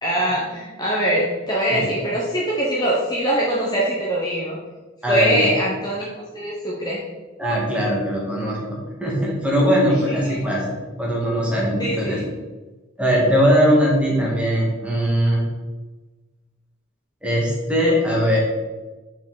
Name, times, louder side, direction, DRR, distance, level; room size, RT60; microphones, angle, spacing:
voice 1, 0.0-4.6 5.1-6.1 6.3-7.0 10.1-10.4 11.8-12.2, right 1 dB, 20° left, -5 dB, 0.9 m, -23 dB
voice 2, 5.0-5.5 7.4-12.2 13.0-15.4 17.2-18.4, equal, 5° right, -5 dB, 1.6 m, -20 dB
5.5 x 4.7 x 4.0 m, 1.2 s
head